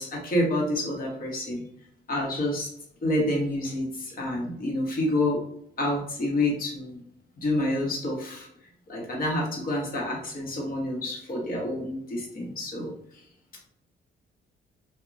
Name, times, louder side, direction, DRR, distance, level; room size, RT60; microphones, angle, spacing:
voice 1, 0.0-1.7 2.1-2.7 3.0-5.4 5.8-7.0 7.4-8.5 8.9-12.9, left 1 dB, 45° left, -2 dB, 1.1 m, -28 dB
2.8 x 2.2 x 2.5 m, 0.70 s
cardioid pair, 90°, 20 cm